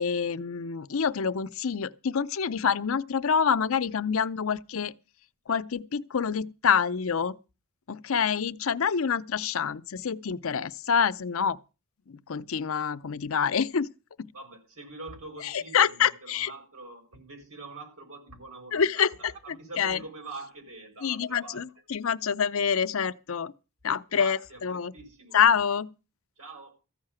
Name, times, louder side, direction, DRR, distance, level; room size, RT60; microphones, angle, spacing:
voice 1, 0.0-4.9 5.5-7.4 7.9-11.6 12.1-13.9 14.2-14.3 15.4-16.5 18.7-19.3 19.8-20.0 21.0-23.5 23.8-24.9 25.3-25.9, left 7 dB, 65° left, 0.6 m, -26 dB
voice 2, 14.3-21.6 24.1-25.4 26.4-26.7, right 3 dB, 85° right, 4.7 m, -44 dB
14.5 x 5.7 x 8.8 m
head